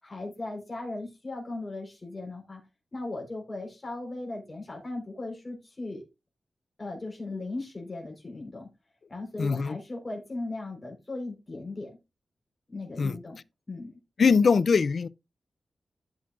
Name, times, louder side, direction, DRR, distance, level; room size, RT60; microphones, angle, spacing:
voice 1, 0.0-2.6 2.9-6.0 6.8-8.7 9.1-11.9 12.7-13.4 13.7-14.0, left 2 dB, 30° left, 4.1 m, -37 dB
voice 2, 9.4-9.8 13.0-13.2 14.2-15.1, left 5 dB, 60° left, 0.5 m, -22 dB
15.0 x 6.0 x 2.4 m
wide cardioid pair, 115°, 0 cm